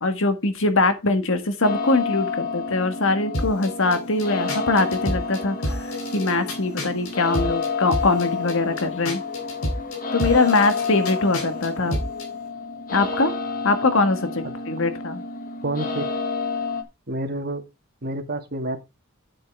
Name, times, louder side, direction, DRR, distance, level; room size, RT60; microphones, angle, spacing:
voice 1, 0.0-5.6 6.1-9.2 10.1-12.0 12.9-13.3 13.6-15.2, left 3 dB, 65° left, 1.7 m, -22 dB
sound 1, 1.6-16.8, left 4 dB, 40° left, 1.5 m, -30 dB
sound 2, 3.3-12.3, left 1 dB, 80° left, 3.5 m, -31 dB
voice 2, 15.6-16.1 17.1-17.6 18.0-18.8, right 1 dB, 45° right, 1.9 m, -28 dB
10.5 x 7.6 x 3.6 m
head